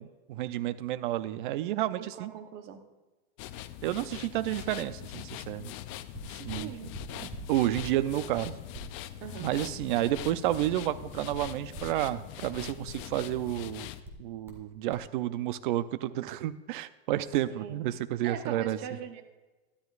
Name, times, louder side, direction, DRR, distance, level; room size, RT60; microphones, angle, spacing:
voice 1, 0.0-2.3 3.8-5.7 6.4-6.7 7.2-8.6 9.4-13.9 14.2-18.8, right 14 dB, 50° right, 14 dB, 0.6 m, -31 dB
voice 2, 2.0-2.8 6.4-6.9 9.2-9.5 17.5-17.8 18.2-19.2, right 8 dB, 30° right, 7 dB, 1.0 m, -41 dB
sound 1, 3.4-14.0, left 13 dB, 30° left, 0.4 m, -42 dB
sound 2, 6.1-8.0 8.3-10.6 10.9-12.0 12.5-13.5 14.0-14.6 14.9-15.1, equal, 5° right, 1.9 m, -45 dB
12.5 x 12.5 x 2.5 m, 1.2 s
supercardioid pair, 150°, 32 cm